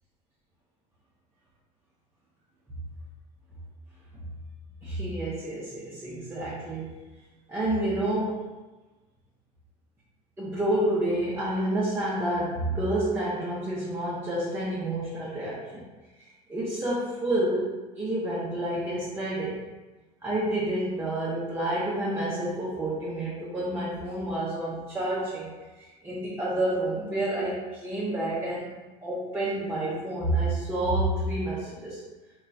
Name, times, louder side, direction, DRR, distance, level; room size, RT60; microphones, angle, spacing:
voice 1, 4.8-7.0 7.5-8.4 10.4-15.8 16.5-19.7 20.2-25.5 26.0-28.7 29.0-32.0, right 1 dB, 10° right, -9 dB, 0.6 m, -29 dB
2.9 x 2.3 x 2.4 m, 1.2 s
supercardioid pair, 120°, 21 cm